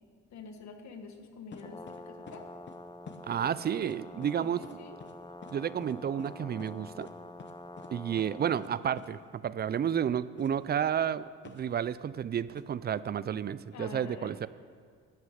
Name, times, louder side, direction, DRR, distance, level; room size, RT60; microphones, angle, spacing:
voice 1, 0.3-2.5 4.4-5.0 13.7-14.4, left 4 dB, 65° left, 6 dB, 1.3 m, -46 dB
sound 1, 1.5-2.0 2.3-2.4 2.7-2.8 3.1-3.6 3.8-3.9 4.2-4.3 4.6-4.7 5.0-5.1 5.4-5.5 5.8-5.9 6.2-6.3 6.6-6.7 7.0-7.1 7.4-7.5 7.8-7.9 8.2-8.3 8.6-8.7 9.0-9.1 10.4-10.5 11.4-11.6 12.6-12.7, left 5 dB, 40° left, 0.9 m, -48 dB
Brass instrument, 1.5-8.7, left 1 dB, 15° left, 0.5 m, -47 dB
voice 2, 3.2-4.6 5.5-7.1 7.9-14.5, right 9 dB, 35° right, 17 dB, 0.4 m, -31 dB
11.5 x 6.4 x 7.7 m, 2.1 s
cardioid pair, 90°, 30 cm